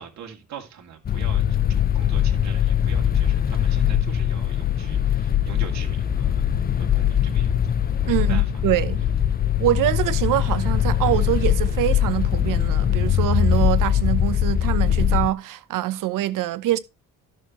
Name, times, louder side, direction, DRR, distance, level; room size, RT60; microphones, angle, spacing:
voice 1, 0.0-6.5 6.8-7.7 8.0-8.4, right 7 dB, 60° right, 2.4 m, -42 dB
sound 1, 1.0-15.3, left 10 dB, 30° left, 0.5 m, -21 dB
voice 2, 8.0-9.0 9.6-16.8, right 13 dB, 75° right, 0.9 m, -24 dB
12.0 x 6.6 x 3.0 m
cardioid pair, 120°, 32 cm